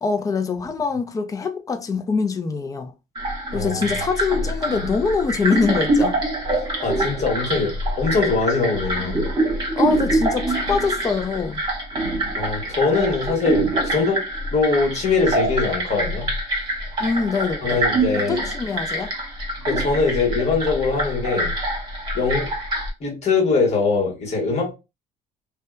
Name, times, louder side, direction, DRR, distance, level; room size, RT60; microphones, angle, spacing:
voice 1, 0.0-2.9 3.5-6.2 9.8-11.6 17.0-17.8 18.2-19.1, left 5 dB, 20° left, 0.4 m, -24 dB
sound 1, 3.2-22.9, right 1 dB, 25° right, 1.1 m, -25 dB
voice 2, 3.5-3.8 6.8-9.2 12.4-14.2 14.5-16.3 17.6-18.4 19.7-21.5 22.1-22.5 23.0-24.7, left 4 dB, 40° left, 1.3 m, -22 dB
2.6 x 2.2 x 2.2 m
cardioid pair, 110°, 17 cm